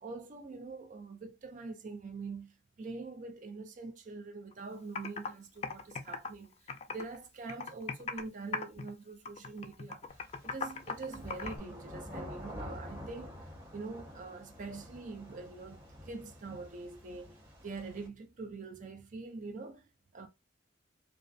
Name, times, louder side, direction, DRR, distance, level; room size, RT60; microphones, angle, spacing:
voice 1, 0.0-6.5 6.9-10.1 10.4-13.4 13.7-19.8 20.1-20.3, right 3 dB, 45° right, 0.5 m, -44 dB
Computer keyboard, 4.5-4.6 5.0-5.3 5.6-7.2 7.5-8.3 8.5-8.9 9.3-11.6, left 5 dB, 35° left, 0.3 m, -38 dB
sound 1, 10.1-18.1, equal, 60° right, 1.4 m, -48 dB
2.4 x 2.0 x 2.6 m
head